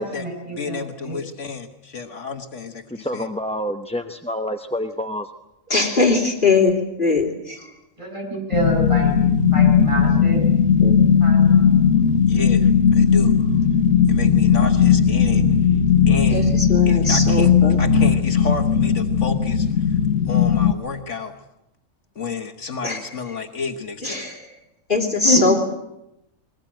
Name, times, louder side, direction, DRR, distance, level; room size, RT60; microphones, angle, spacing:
voice 1, 0.0-1.2 8.0-9.1 9.4-10.5 11.2-11.7 15.3-15.8 25.2-25.6, equal, 25° right, 0 dB, 6.9 m, -27 dB
voice 2, 0.5-3.3 12.2-13.4 14.1-15.5 16.1-16.5 16.9-20.0 20.3-21.4 22.1-24.3, left 5 dB, 65° left, 6 dB, 1.7 m, -31 dB
voice 3, 2.9-5.3, left 1 dB, 5° left, 6 dB, 0.7 m, -27 dB
voice 4, 5.7-7.6 10.8-11.1 16.3-17.8 22.8-23.0 24.0-24.6 24.9-25.5, left 3 dB, 40° left, 0 dB, 3.5 m, -21 dB
sound 1, 8.5-20.7, left 7 dB, 90° left, 1.5 m, -17 dB
22.0 x 20.0 x 9.0 m, 0.88 s
omnidirectional pair, 1.3 m